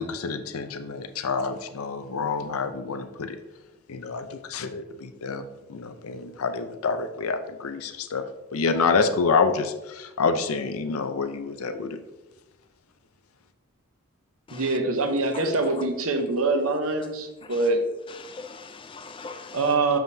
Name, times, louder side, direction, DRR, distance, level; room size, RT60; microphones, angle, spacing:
voice 1, 0.0-3.4 3.9-8.3 8.5-12.0, left 4 dB, 75° left, 0.6 m, -27 dB
voice 2, 14.5-17.8 19.5-20.0, right 3 dB, 70° right, 0.9 m, -24 dB
voice 3, 15.3-15.7 17.4-17.7 18.1-19.7, left 4 dB, 25° left, 0.3 m, -41 dB
7.2 x 5.7 x 2.7 m
head